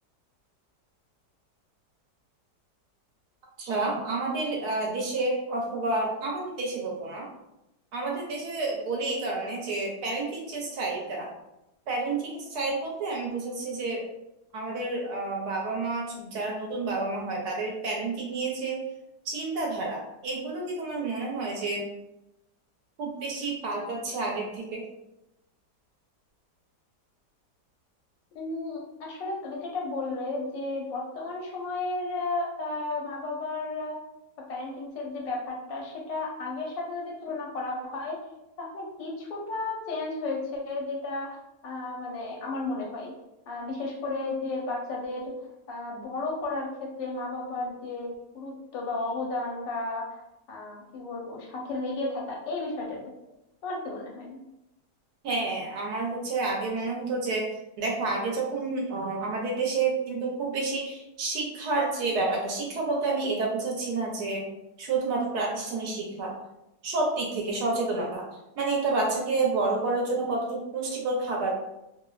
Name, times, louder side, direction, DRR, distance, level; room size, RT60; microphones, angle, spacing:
voice 1, 3.6-7.3 7.9-11.3 11.9-14.1 14.5-18.8 19.3-21.9 23.0-24.8 55.2-57.5 57.8-64.4 64.8-66.3 66.8-68.2 68.6-71.5, right 3 dB, 70° right, -1 dB, 1.0 m, -29 dB
voice 2, 28.3-34.0 34.5-38.2 38.6-41.4 41.6-43.1 43.5-45.4 45.7-50.2 50.5-53.0 53.6-54.4, left 2 dB, 85° left, -1 dB, 1.3 m, -33 dB
3.0 x 2.0 x 2.2 m, 0.90 s
omnidirectional pair, 1.9 m